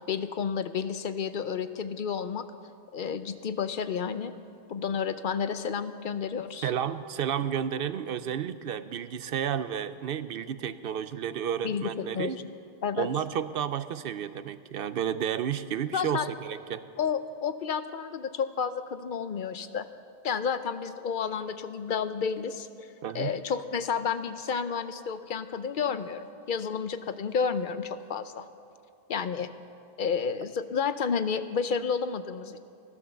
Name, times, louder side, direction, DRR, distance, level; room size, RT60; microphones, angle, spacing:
voice 1, 0.1-2.4 2.9-4.3 4.7-6.7 11.6-12.3 12.8-13.1 15.9-16.3 17.0-19.9 20.2-22.9 23.1-28.5 29.1-29.5 30.0-32.6, left 6 dB, 60° left, 11 dB, 0.8 m, -31 dB
voice 2, 6.6-12.4 13.0-16.8 23.0-23.3, right 8 dB, 70° right, 13 dB, 0.7 m, -31 dB
14.5 x 12.5 x 6.9 m, 2.4 s
omnidirectional pair, 1.0 m